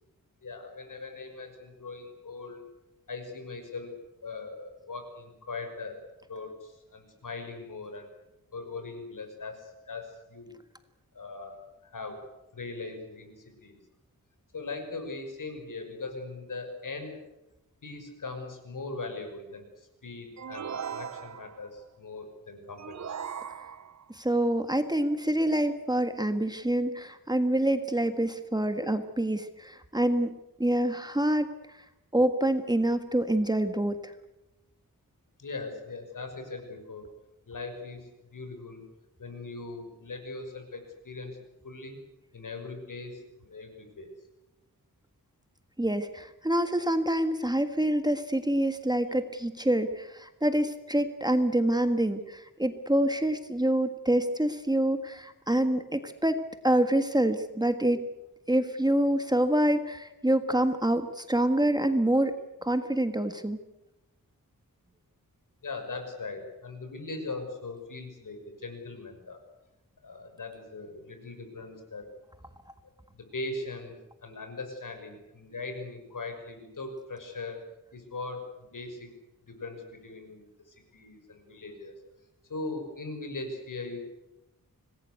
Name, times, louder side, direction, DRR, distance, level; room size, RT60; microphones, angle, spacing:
voice 1, 0.4-2.6 3.1-3.9 4.2-6.0 6.3-8.1 8.5-10.5 11.1-11.6 11.8-12.2 12.5-13.8 14.5-17.2 17.8-23.0 35.4-37.1 37.5-38.8 39.2-41.4 41.6-42.0 42.3-44.1 65.6-69.4 70.0-72.1 73.1-74.0 74.2-77.6 77.9-79.1 79.5-81.9 82.5-84.1, left 3 dB, 65° left, 6 dB, 6.1 m, -40 dB
sound 1, 20.4-21.7 22.8-24.1, right 7 dB, 55° right, 0.8 m, -38 dB
voice 2, 24.1-31.8 32.1-34.1 45.8-56.4 56.6-58.0 58.5-62.3 62.6-63.6, right 1 dB, 10° right, 8 dB, 1.6 m, -26 dB
26.0 x 19.5 x 8.2 m, 0.93 s
wide cardioid pair, 125°, 34 cm